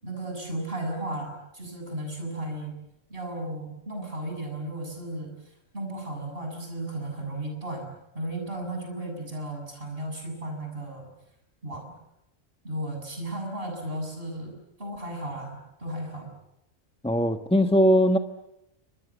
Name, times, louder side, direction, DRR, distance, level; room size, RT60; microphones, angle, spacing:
voice 1, 0.0-2.8 3.1-5.3 5.7-7.9 8.1-11.1 11.6-11.9 12.6-16.3, right 1 dB, 50° right, 7.6 m, -34 dB
voice 2, 17.0-18.2, equal, 5° left, 1.2 m, -20 dB
29.0 x 25.5 x 7.2 m
omnidirectional pair, 1.3 m